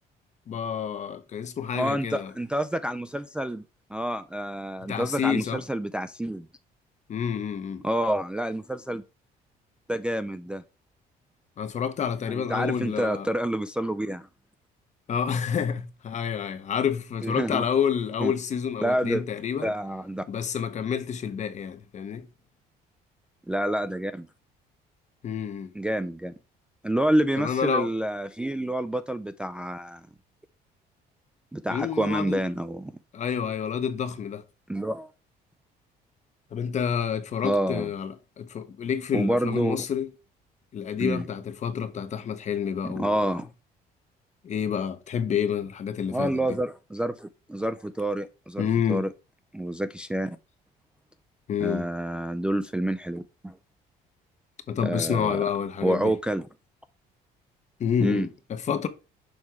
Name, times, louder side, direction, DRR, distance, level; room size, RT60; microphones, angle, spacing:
voice 1, 0.5-2.3 4.9-5.6 7.1-7.8 11.6-13.3 15.1-19.7 20.3-22.3 25.2-25.7 27.4-27.9 31.7-32.4 33.1-34.4 36.5-40.1 40.7-43.4 44.4-46.6 48.6-49.1 51.5-51.9 54.7-56.1 57.8-58.9, left 7 dB, 45° left, 0.8 m, -29 dB
voice 2, 1.7-3.6 3.9-6.5 7.8-9.0 9.9-10.6 12.3-14.3 17.2-17.6 18.2-18.3 18.8-19.2 19.6-20.2 23.5-24.3 25.8-26.3 26.8-30.0 31.5-32.9 34.7-35.1 37.4-37.9 39.1-39.8 41.0-41.3 42.8-43.5 46.1-49.1 49.5-50.4 51.6-53.5 54.8-55.4 55.8-56.5 58.0-58.3, right 1 dB, 5° right, 0.3 m, -28 dB
6.4 x 3.5 x 4.4 m
cardioid pair, 110°, 17 cm